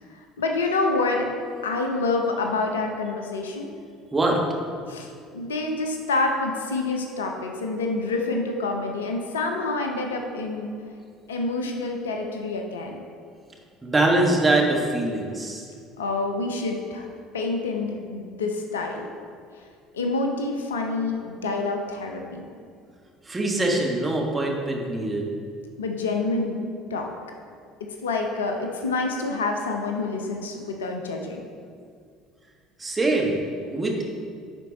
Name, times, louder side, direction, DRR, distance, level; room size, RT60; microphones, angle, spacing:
voice 1, 0.1-1.3 1.6-3.7 4.9-10.7 11.3-13.0 16.0-17.1 17.3-19.1 19.9-22.5 25.8-26.6 26.9-27.1 27.8-31.4, left 3 dB, 75° left, 3 dB, 0.7 m, -27 dB
voice 2, 4.1-4.4 13.8-15.7 23.2-25.3 32.8-33.4 33.7-34.0, right 2 dB, 20° right, 0 dB, 1.4 m, -23 dB
10.5 x 4.5 x 4.0 m, 2.2 s
figure-of-eight pair, 60°, 0 cm